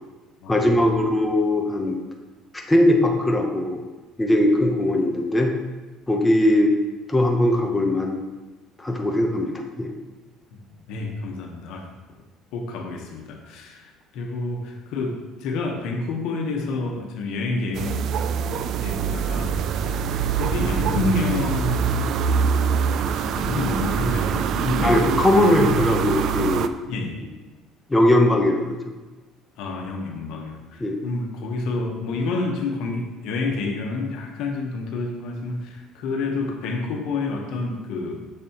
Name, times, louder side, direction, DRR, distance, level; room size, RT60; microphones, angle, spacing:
voice 1, 0.5-2.0 2.5-3.8 4.2-5.5 6.1-6.7 7.1-8.2 8.8-9.9 24.8-26.7 27.9-28.8 30.8-31.1, left 1 dB, 10° left, 1 dB, 0.7 m, -20 dB
voice 2, 10.9-11.9 12.5-18.0 18.5-22.0 23.1-25.6 26.9-27.3 29.6-38.3, left 3 dB, 75° left, 2 dB, 1.1 m, -29 dB
sound 1, 17.7-26.7, right 7 dB, 55° right, 0.3 m, -24 dB
6.8 x 6.7 x 3.0 m, 1.2 s
cardioid pair, 135°, 0 cm